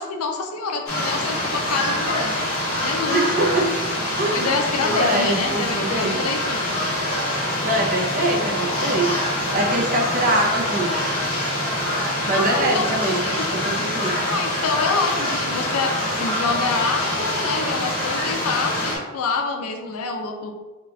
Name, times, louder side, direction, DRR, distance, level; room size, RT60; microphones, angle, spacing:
voice 1, 0.0-3.3 4.3-6.7 12.3-12.8 13.2-13.5 14.3-15.9 16.2-20.5, left 4 dB, 85° left, 4 dB, 0.5 m, -26 dB
sound 1, 0.9-19.0, left 1 dB, 65° left, 1.1 m, -25 dB
voice 2, 3.1-3.8 4.2-4.5 4.8-6.2 7.6-9.2 9.5-10.9 12.3-14.2, right 1 dB, 40° right, 0 dB, 0.6 m, -23 dB
3.7 x 2.3 x 3.5 m, 1.2 s
head